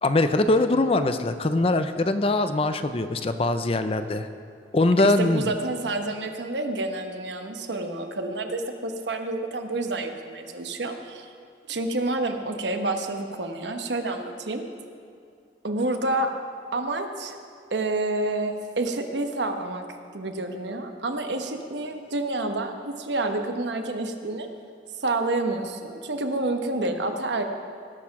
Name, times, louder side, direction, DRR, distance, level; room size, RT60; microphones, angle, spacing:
voice 1, 0.0-4.3 4.7-5.5, left 2 dB, 30° left, 10 dB, 0.5 m, -22 dB
voice 2, 5.0-11.3 11.7-14.6 15.6-16.3 16.7-17.4 17.7-19.8 20.1-24.5 25.0-27.4, right 2 dB, 80° right, 5 dB, 1.0 m, -28 dB
18.0 x 6.7 x 5.9 m, 2.4 s
head